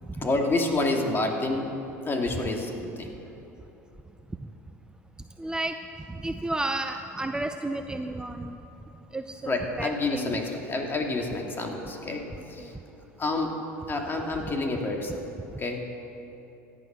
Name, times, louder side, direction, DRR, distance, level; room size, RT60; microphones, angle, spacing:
voice 1, 0.2-1.7 2.0-2.7 3.0-3.1 9.5-12.2 12.5-12.6 13.2-13.5 13.9-15.2 15.6-15.8, left 2 dB, 25° left, 2 dB, 2.6 m, -28 dB
voice 2, 5.4-5.7 6.1-8.6 9.1-10.4 12.6-12.7, right 2 dB, 10° right, 6 dB, 0.7 m, -32 dB
17.0 x 11.0 x 6.2 m, 3.0 s
hypercardioid pair, 85°, 8 cm